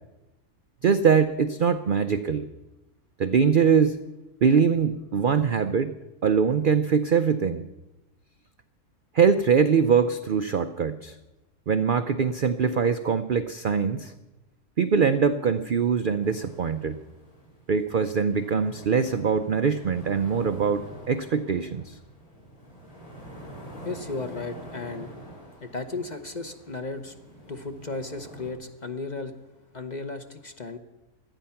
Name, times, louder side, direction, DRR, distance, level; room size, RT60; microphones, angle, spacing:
voice 1, 0.8-2.5 3.2-4.0 4.4-5.9 6.2-7.6 9.1-11.1 11.7-14.1 14.8-17.0 17.7-21.9, right 6 dB, 60° right, 9 dB, 0.5 m, -23 dB
sound 1, 16.2-28.5, right 1 dB, 70° left, 5.9 m, -46 dB
voice 2, 23.8-25.1 25.6-27.1 27.5-29.3 29.7-30.8, left 3 dB, 35° left, 7 dB, 0.9 m, -35 dB
18.0 x 12.5 x 5.7 m, 0.99 s
omnidirectional pair, 1.6 m